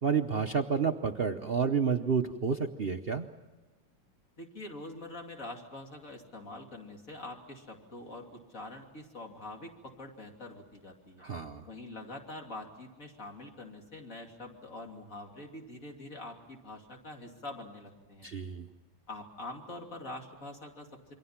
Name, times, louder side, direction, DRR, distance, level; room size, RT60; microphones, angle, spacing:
voice 1, 0.0-3.3 11.2-11.7 18.2-18.7, right 6 dB, 90° right, 5 dB, 0.5 m, -30 dB
voice 2, 4.4-11.2 11.7-18.3 19.1-21.1, left 2 dB, 40° left, 1 dB, 3.3 m, -45 dB
28.0 x 23.5 x 5.8 m, 1.2 s
omnidirectional pair, 2.2 m